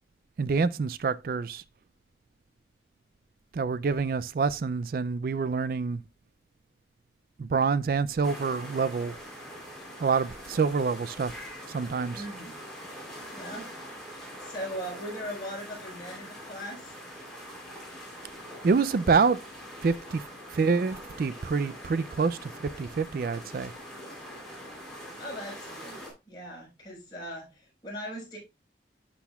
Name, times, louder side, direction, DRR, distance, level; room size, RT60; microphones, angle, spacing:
voice 1, 0.4-1.6 3.5-6.0 7.4-9.1 10.0-11.3 11.7-12.2 18.6-19.4 19.8-20.2 20.5-22.5 22.8-23.7, right 5 dB, 55° right, 0.3 m, -26 dB
sound 1, 8.2-26.1, equal, 5° left, 3.4 m, -44 dB
voice 2, 12.1-12.7 13.3-13.7 14.1-17.0 25.2-28.4, equal, 25° left, 4.7 m, -40 dB
11.5 x 6.1 x 2.3 m
head